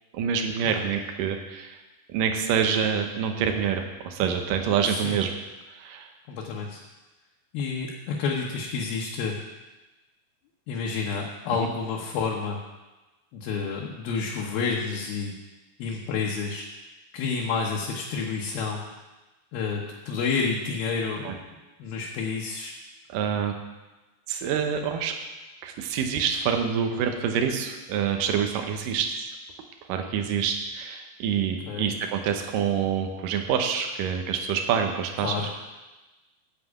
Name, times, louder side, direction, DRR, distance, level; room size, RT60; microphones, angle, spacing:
voice 1, 0.1-1.8 2.1-5.3 5.7-6.1 21.2-21.3 23.1-23.5 24.3-25.1 25.6-29.3 29.9-35.4, right 7 dB, 75° right, 4 dB, 2.6 m, -26 dB
voice 2, 4.8-5.2 6.3-6.8 7.5-9.4 10.7-12.6 13.3-15.3 15.8-16.7 17.1-18.8 19.5-21.3 21.8-22.7 31.6-31.9 35.2-35.5, left 5 dB, 85° left, -2 dB, 2.9 m, -29 dB
8.5 x 7.5 x 8.3 m, 1.1 s
omnidirectional pair, 4.2 m